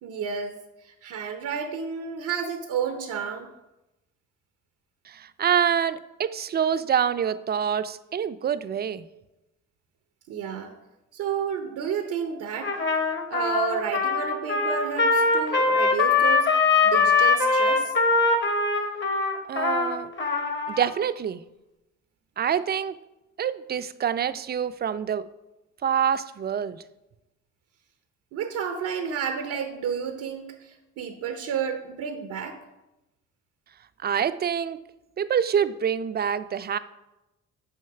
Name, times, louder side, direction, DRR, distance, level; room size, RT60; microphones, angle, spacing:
voice 1, 0.0-0.6 0.8-3.5 10.3-10.7 11.1-12.7 13.3-16.5 16.8-17.9 28.3-32.6, right 7 dB, 85° right, 6 dB, 0.8 m, -31 dB
voice 2, 5.1-9.1 19.5-20.1 20.7-21.4 22.4-22.9 23.4-25.3 25.8-26.8 34.0-34.8 35.2-36.8, right 8 dB, 35° right, 13 dB, 0.4 m, -26 dB
Trumpet, 12.6-20.9, left 4 dB, 40° left, 1.1 m, -22 dB
6.4 x 4.6 x 5.7 m, 0.96 s
cardioid pair, 90°, 30 cm